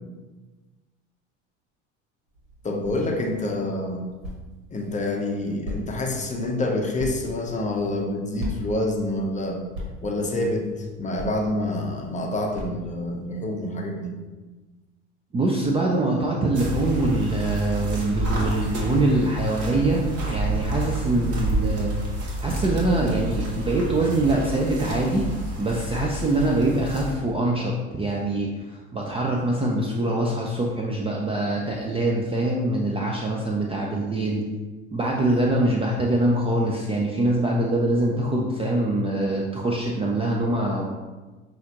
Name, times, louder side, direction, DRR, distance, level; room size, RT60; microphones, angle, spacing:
sound 1, 2.3-13.2, left 1 dB, 70° right, 1.5 m, -40 dB
voice 1, 2.6-4.0 4.7-9.6 10.0-14.2 35.5-35.7, left 1 dB, 20° left, 1 dB, 0.7 m, -27 dB
voice 2, 15.3-21.9 22.4-25.3 25.6-34.4 34.9-40.8, right 2 dB, 15° right, -1 dB, 0.4 m, -24 dB
sound 2, 16.5-27.1, right 1 dB, 40° right, 1.3 m, -29 dB
5.7 x 2.5 x 2.8 m, 1.2 s
hypercardioid pair, 85°, 36 cm